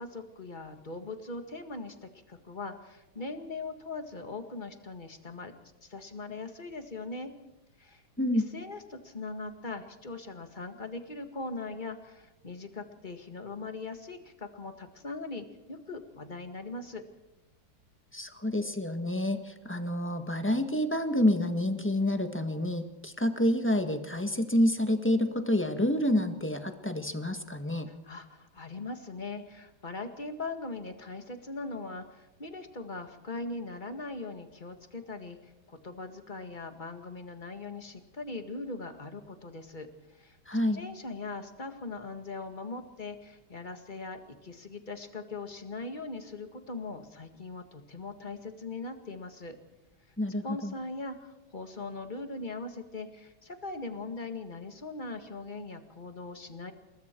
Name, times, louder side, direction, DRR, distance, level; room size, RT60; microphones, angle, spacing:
voice 1, 0.0-2.0 2.3-5.5 5.8-7.3 7.8-8.0 8.3-17.0 28.0-40.4 40.7-49.6 50.4-56.7, left 3 dB, 25° left, 7 dB, 1.9 m, -40 dB
voice 2, 18.1-27.9 40.5-40.8 50.2-50.7, left 1 dB, 5° left, 7 dB, 1.5 m, -28 dB
28.5 x 21.0 x 4.6 m, 1.0 s
omnidirectional pair, 2.1 m